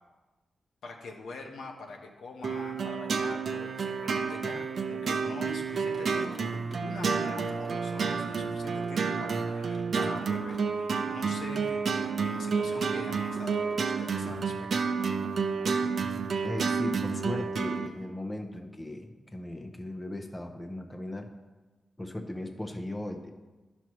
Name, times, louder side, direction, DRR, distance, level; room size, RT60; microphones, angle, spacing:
voice 1, 0.8-14.7, left 3 dB, 90° left, 1 dB, 1.0 m, -44 dB
sound 1, 2.4-17.9, right 5 dB, 65° right, 0.5 m, -30 dB
Singing, 5.7-18.1, right 1 dB, 40° right, 1.0 m, -49 dB
voice 2, 16.4-21.3 22.0-23.3, left 1 dB, 15° left, 4 dB, 0.7 m, -37 dB
11.0 x 6.0 x 3.0 m, 1.2 s
cardioid pair, 85°, 0 cm